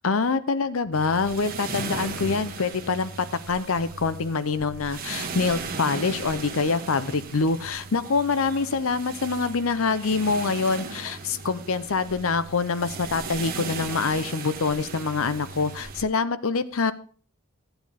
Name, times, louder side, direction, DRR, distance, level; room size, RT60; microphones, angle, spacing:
voice 1, 0.0-3.1 3.5-16.9, left 4 dB, 65° left, 14 dB, 0.7 m, -25 dB
sound 1, 0.9-16.1, right 4 dB, 40° right, 1.3 m, -37 dB
13.5 x 8.9 x 3.5 m, 0.43 s
head